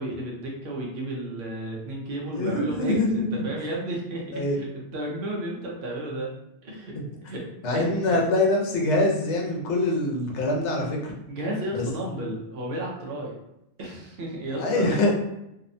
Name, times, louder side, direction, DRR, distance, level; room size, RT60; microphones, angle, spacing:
voice 1, 0.0-6.3 6.6-7.0 7.2-7.5 7.7-8.2 11.3-13.4 13.8-14.9, right 1 dB, 60° right, -2 dB, 0.7 m, -33 dB
voice 2, 2.3-3.5 4.3-4.6 7.0-7.1 7.6-11.2 14.6-15.1, left 2 dB, 70° left, 0 dB, 0.9 m, -24 dB
2.7 x 2.1 x 2.5 m, 0.83 s
omnidirectional pair, 1.3 m